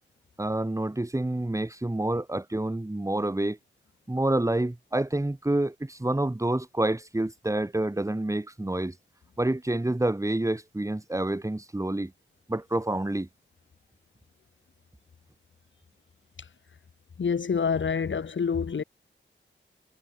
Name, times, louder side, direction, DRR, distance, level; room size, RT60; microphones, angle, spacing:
voice 1, 0.4-3.6 4.1-8.9 9.4-12.1 12.5-13.3, right 1 dB, 15° right, 3.1 m, -28 dB
voice 2, 17.2-18.8, left 6 dB, 75° left, 3.9 m, -27 dB
wide cardioid pair, 80°, 20 cm